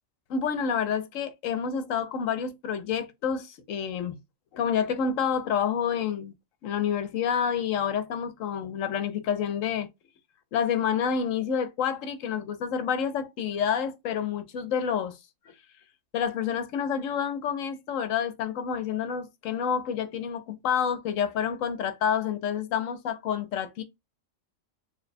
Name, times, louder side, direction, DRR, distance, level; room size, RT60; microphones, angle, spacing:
voice 1, 0.3-4.2 4.5-6.3 6.6-9.9 10.5-15.2 16.1-23.8, left 7 dB, 85° left, 1.1 m, -28 dB
3.4 x 2.2 x 4.0 m
omnidirectional pair, 1.3 m